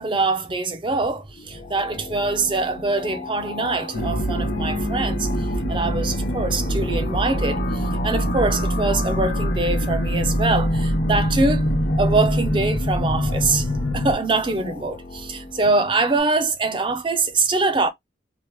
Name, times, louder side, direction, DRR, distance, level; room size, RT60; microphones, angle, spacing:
voice 1, 0.0-5.3 5.7-11.7 12.0-13.7 13.9-17.9, right 3 dB, 25° right, 0.4 m, -23 dB
sound 1, 1.2-16.2, left 3 dB, 45° left, 0.4 m, -37 dB
sound 2, 3.9-14.1, equal, 85° left, 0.9 m, -23 dB
2.8 x 2.0 x 3.1 m
head